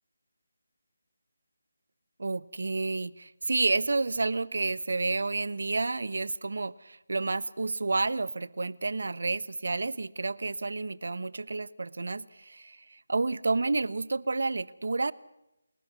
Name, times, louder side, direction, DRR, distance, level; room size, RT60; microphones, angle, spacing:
voice 1, 2.2-15.1, right 3 dB, 70° right, 20 dB, 1.1 m, -30 dB
30.0 x 14.5 x 8.0 m, 0.88 s
figure-of-eight pair, 160°, 0 cm